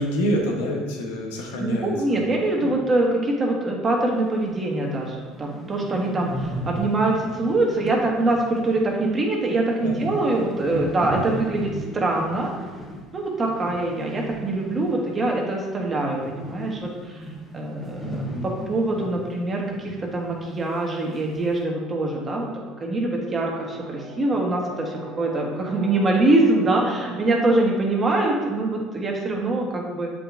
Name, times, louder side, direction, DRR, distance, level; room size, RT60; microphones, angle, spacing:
voice 1, 0.0-2.3 2.6-2.7 9.8-10.0 18.0-18.5, equal, 85° left, 0 dB, 1.1 m, -27 dB
voice 2, 1.6-12.5 13.1-17.3 17.5-22.5 22.8-30.1, right 2 dB, 30° right, -1 dB, 1.3 m, -24 dB
sound 1, 4.5-4.6 4.9-5.0 5.2-15.4 15.6-20.1 20.4-20.5 21.1-21.6, equal, 15° left, 1.4 m, -36 dB
Brass instrument, 23.6-27.8, right 2 dB, 55° right, 1.4 m, -41 dB
7.6 x 4.9 x 2.6 m, 1.3 s
hypercardioid pair, 80°, 0 cm